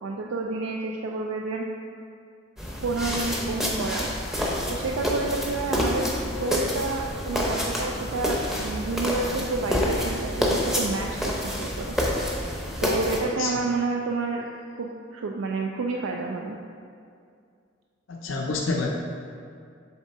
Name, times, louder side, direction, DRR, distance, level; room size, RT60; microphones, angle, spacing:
voice 1, 0.0-1.6 2.8-4.1 4.7-12.0 12.8-14.5 14.8-16.6, right 3 dB, 90° right, 1 dB, 0.4 m, -29 dB
sound 1, 2.6-13.2, equal, ahead, 0.6 m, -28 dB
voice 2, 18.1-18.9, left 3 dB, 75° left, 0 dB, 0.5 m, -27 dB
7.0 x 3.7 x 4.1 m, 2.3 s
head